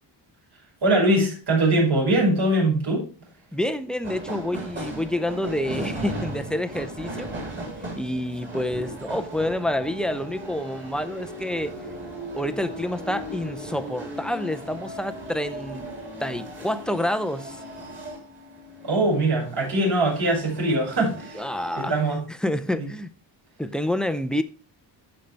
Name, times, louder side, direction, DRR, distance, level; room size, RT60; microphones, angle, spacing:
voice 1, 0.8-3.1 18.8-21.4 21.7-22.2, right 1 dB, 60° right, 5.6 m, -22 dB
voice 2, 3.5-7.3 8.0-11.8 12.4-15.9 16.2-17.6 21.3-21.9 22.4-23.1 23.6-24.4, left 1 dB, ahead, 0.4 m, -28 dB
sound 1, 4.0-22.2, right 1 dB, 25° right, 3.2 m, -37 dB
14.0 x 5.3 x 3.3 m
wide cardioid pair, 170°, 45 cm